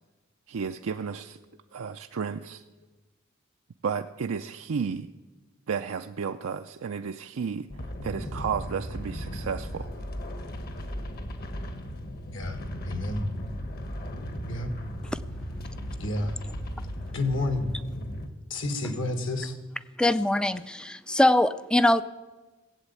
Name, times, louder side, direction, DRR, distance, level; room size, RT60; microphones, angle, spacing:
voice 1, 0.5-1.4 1.7-2.6 3.8-5.1 5.7-7.7 8.0-9.9, right 6 dB, 75° right, 6 dB, 0.5 m, -32 dB
sound 1, 7.7-18.3, equal, 50° left, 1.3 m, -36 dB
voice 2, 12.9-13.3 14.5-14.7 16.0-16.4 17.1-17.7 18.5-19.6, left 2 dB, 65° left, 7 dB, 1.7 m, -29 dB
voice 3, 20.0-22.0, left 1 dB, 5° left, 15 dB, 0.4 m, -22 dB
16.5 x 8.2 x 8.3 m, 1.2 s
head